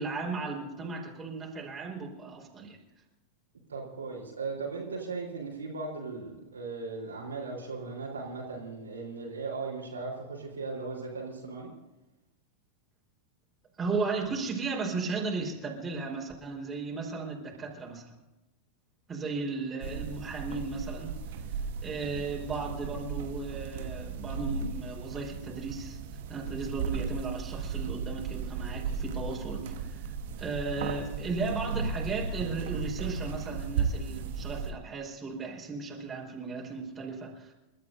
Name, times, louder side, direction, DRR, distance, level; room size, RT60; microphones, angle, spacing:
voice 1, 0.0-2.8 13.8-18.2 19.1-21.4 21.8-26.0 26.3-30.1 30.4-37.5, right 4 dB, 20° right, -1 dB, 4.5 m, -35 dB
voice 2, 3.7-11.7, right 4 dB, 70° right, -2 dB, 3.9 m, -37 dB
sound 1, 19.8-34.7, right 5 dB, 55° right, 1.3 m, -35 dB
29.5 x 13.0 x 2.7 m, 1.0 s
figure-of-eight pair, 90°, 0 cm